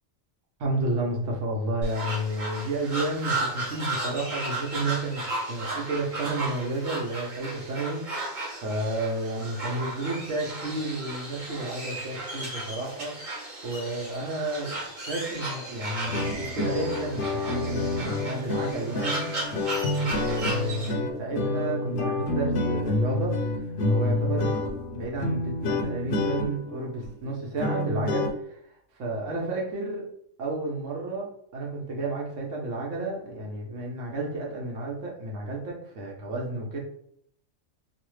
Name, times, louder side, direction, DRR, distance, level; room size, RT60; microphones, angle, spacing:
voice 1, 0.6-8.0 8.6-13.1 13.6-14.8 15.1-19.3 20.1-23.4 23.9-24.6 24.9-28.6 29.0-30.0 30.4-36.8, right 2 dB, 75° right, -2 dB, 1.2 m, -31 dB
sound 1, 1.8-20.9, right 2 dB, 40° right, 1.0 m, -35 dB
sound 2, 16.0-28.3, left 2 dB, 65° left, 0.7 m, -28 dB
3.1 x 2.1 x 3.1 m, 0.67 s
omnidirectional pair, 1.3 m